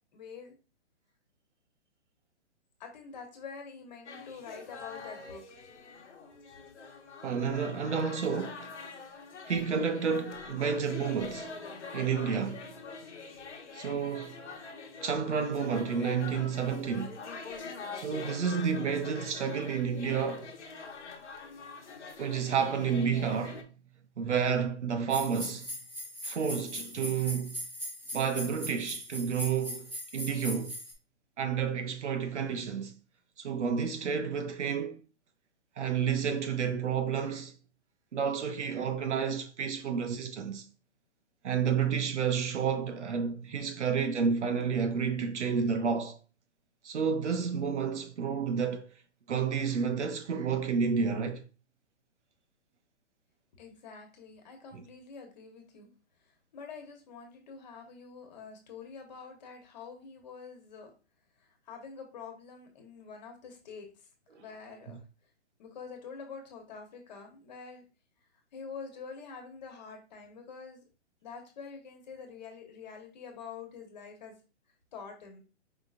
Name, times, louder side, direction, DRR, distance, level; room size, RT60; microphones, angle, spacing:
voice 1, 0.1-0.5 2.8-5.6 53.5-55.9 56.2-60.9 61.4-64.1 64.4-65.0 65.6-67.8 68.5-70.8 71.2-74.3 74.9-75.4, left 5 dB, 40° left, 1.3 m, -46 dB
sound 1, 4.1-23.6, left 4 dB, 85° left, 1.2 m, -45 dB
voice 2, 7.2-8.8 9.5-11.6 11.9-12.7 13.7-14.4 15.0-17.2 17.9-20.5 22.2-23.6 24.2-25.7 26.2-27.6 28.1-30.7 31.4-32.9 33.4-35.0 35.8-37.5 38.1-40.6 41.4-46.2 46.8-48.9 49.3-51.4 64.3-64.4 64.9-65.0, right 6 dB, 85° right, 1.0 m, -30 dB
sound 2, 25.1-30.9, equal, 5° right, 0.4 m, -40 dB
5.1 x 3.8 x 2.5 m
hypercardioid pair, 160°, 34 cm